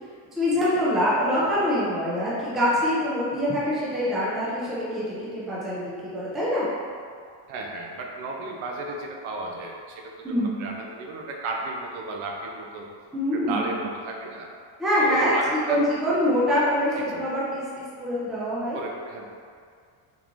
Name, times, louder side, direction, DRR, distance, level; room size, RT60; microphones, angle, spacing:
voice 1, 0.4-6.7 10.2-10.5 13.1-13.6 14.8-15.3 15.7-17.6 18.0-18.8, equal, ahead, -8 dB, 0.3 m, -24 dB
voice 2, 7.5-12.9 13.3-14.5 15.0-15.8 17.0-17.3 18.7-19.3, right 2 dB, 75° right, 0 dB, 0.7 m, -34 dB
3.7 x 3.0 x 2.5 m, 2.1 s
cardioid pair, 165°, 50 cm